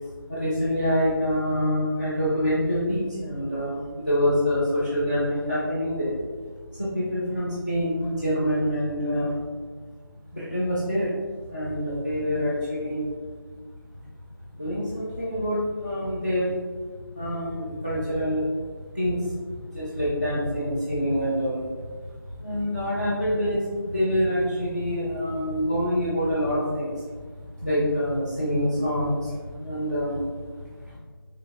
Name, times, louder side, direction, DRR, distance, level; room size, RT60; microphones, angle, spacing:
voice 1, 0.3-6.2 6.8-9.3 10.3-11.1 11.5-13.0 14.5-16.5 17.1-18.4 18.9-21.9 22.4-26.9 27.6-30.2 30.8-31.0, equal, 25° left, -10 dB, 0.5 m, -26 dB
4.2 x 3.0 x 2.7 m, 1.5 s
figure-of-eight pair, 180°, 12 cm